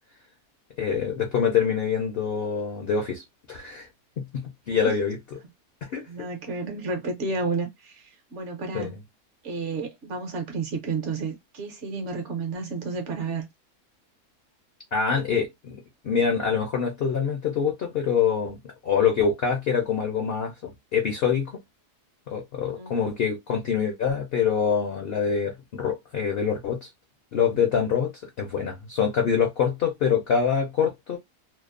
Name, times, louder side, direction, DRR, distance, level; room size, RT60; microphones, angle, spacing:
voice 1, 0.8-3.2 3.5-3.9 4.2-5.2 5.9-6.0 8.7-8.9 14.9-21.5 22.3-26.9 27.3-28.1 28.4-31.2, left 7 dB, 65° left, 0.5 m, -25 dB
voice 2, 6.1-9.0 9.4-13.5 22.7-23.0, right 4 dB, 60° right, 0.9 m, -31 dB
2.7 x 2.0 x 2.4 m
omnidirectional pair, 1.7 m